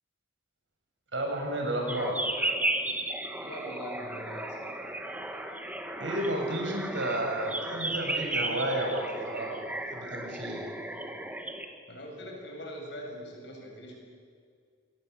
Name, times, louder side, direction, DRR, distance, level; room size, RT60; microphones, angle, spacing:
voice 1, 1.1-2.3 5.9-9.6 9.9-10.7, right 1 dB, 75° right, 1 dB, 7.4 m, -32 dB
sound 1, 1.9-11.7, right 1 dB, 10° right, 1.9 m, -34 dB
voice 2, 3.4-4.8 11.9-13.9, equal, 65° left, 0 dB, 7.7 m, -42 dB
28.0 x 22.5 x 8.4 m, 2.1 s
head